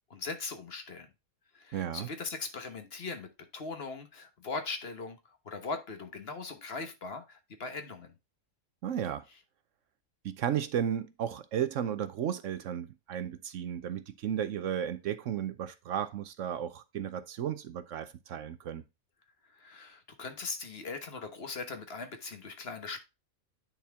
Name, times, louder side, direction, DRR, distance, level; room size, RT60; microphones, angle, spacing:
voice 1, 0.1-1.1 1.5-8.1 19.5-23.0, left 4 dB, 45° left, 1.3 m, -40 dB
voice 2, 1.7-2.1 8.8-9.2 10.2-18.8, right 9 dB, 70° right, 1.0 m, -34 dB
9.4 x 4.4 x 3.4 m
omnidirectional pair, 1.5 m